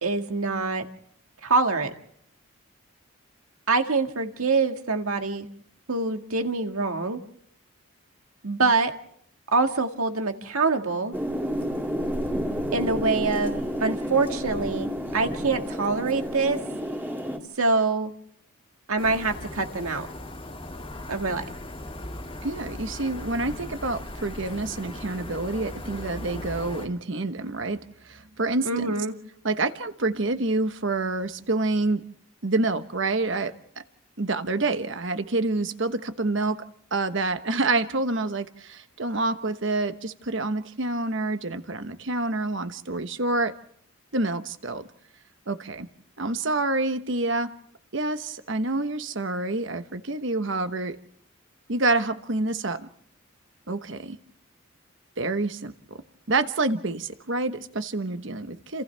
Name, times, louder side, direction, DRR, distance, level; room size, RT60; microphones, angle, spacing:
voice 1, 0.0-0.9 1.4-1.9 3.7-5.5 5.9-7.2 8.4-8.9 9.5-11.1 12.7-16.6 17.6-18.1 18.9-20.1 21.1-21.4 28.7-29.1, right 3 dB, 80° right, 5 dB, 1.9 m, -25 dB
sound 1, 11.1-17.4, equal, 10° right, 2.5 m, -30 dB
sound 2, 19.0-26.9, left 1 dB, 25° left, 2.3 m, -38 dB
voice 2, 22.4-27.8 28.0-28.9 29.4-32.0 32.4-33.5 34.2-36.6 36.9-43.5 44.1-44.9 45.5-45.9 46.2-47.5 47.9-51.0 51.7-52.9 53.7-54.2 55.2-56.0 56.3-58.8, right 2 dB, 55° right, 10 dB, 1.2 m, -27 dB
29.5 x 28.0 x 3.4 m, 0.65 s
head